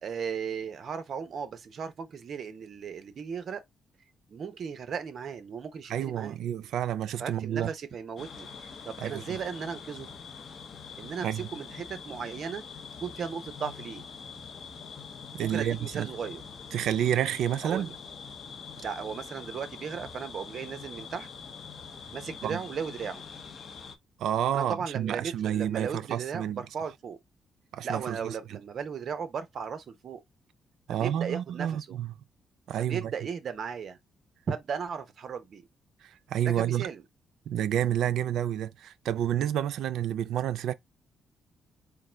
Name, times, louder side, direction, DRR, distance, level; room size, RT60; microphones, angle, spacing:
voice 1, 0.0-3.6 4.3-6.4 7.2-8.5 8.9-10.1 11.0-12.6 13.0-14.0 15.4-16.4 17.6-18.0 18.8-21.3 22.1-23.2 24.5-27.2 27.8-30.2 30.9-32.0 32.8-34.0 34.5-35.7 36.4-37.0, right 6 dB, 50° right, 0.8 m, -36 dB
voice 2, 5.9-7.7 9.0-9.4 11.2-11.4 15.3-16.1 16.7-17.9 22.4-22.6 24.2-26.6 27.7-28.4 30.9-32.1 32.7-33.1 36.3-36.9 37.5-40.7, right 10 dB, 80° right, 0.4 m, -29 dB
sound 1, 8.2-24.0, left 6 dB, 50° left, 0.7 m, -44 dB
3.8 x 2.2 x 4.4 m
cardioid pair, 130°, 0 cm